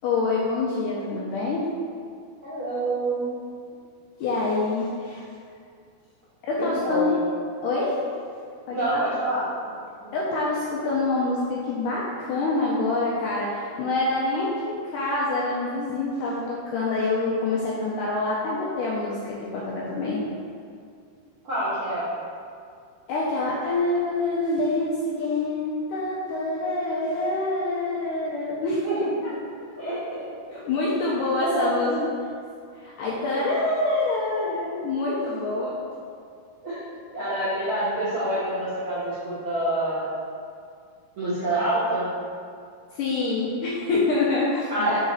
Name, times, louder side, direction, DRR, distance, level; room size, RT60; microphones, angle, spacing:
voice 1, 0.0-1.7 4.2-5.3 6.4-7.1 7.6-8.0 8.7-9.0 10.1-20.2 23.1-28.9 29.7-29.8 30.5-32.1 32.7-35.9 42.9-45.0, left 2 dB, 80° left, -5 dB, 1.9 m, -26 dB
voice 2, 2.4-3.4 6.6-7.2 8.7-9.5 21.4-22.1 28.8-29.3 29.8-30.2 31.4-32.1 33.1-33.2 36.6-36.8 37.1-40.1 41.2-42.1 44.7-45.0, right 1 dB, 65° right, -12 dB, 1.3 m, -27 dB
4.9 x 4.9 x 4.0 m, 2.3 s
omnidirectional pair, 4.3 m